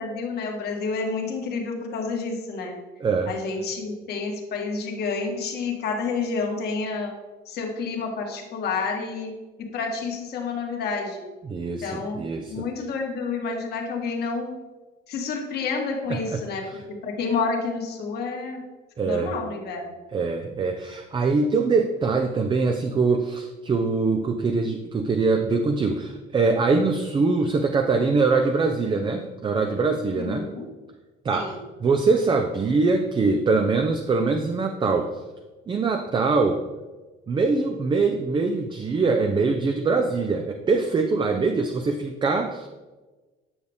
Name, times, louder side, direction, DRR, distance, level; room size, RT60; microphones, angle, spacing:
voice 1, 0.0-2.8 3.3-7.1 7.4-9.3 9.6-11.2 11.8-12.2 12.5-14.5 15.1-18.6 19.0-20.0 30.2-30.7 31.3-31.6, left 4 dB, 60° left, 1 dB, 1.6 m, -29 dB
voice 2, 3.0-3.3 11.4-12.7 16.1-16.4 19.0-19.3 20.1-30.5 31.2-35.2 35.7-36.6 37.3-42.7, right 4 dB, 25° right, 5 dB, 0.5 m, -23 dB
9.6 x 6.5 x 3.5 m, 1.2 s
cardioid pair, 135°, 19 cm